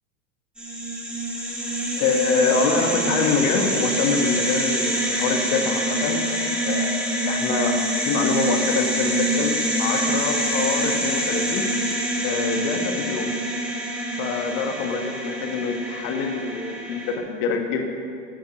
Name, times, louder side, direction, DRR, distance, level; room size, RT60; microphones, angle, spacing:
sound 1, 0.6-17.2, right 1 dB, ahead, 2.4 m, -25 dB
voice 1, 2.0-6.9 7.3-7.8 8.0-11.6 12.2-13.3 14.2-17.8, left 5 dB, 55° left, 3 dB, 1.6 m, -25 dB
13.0 x 7.1 x 8.0 m, 2.4 s
hypercardioid pair, 115°, 41 cm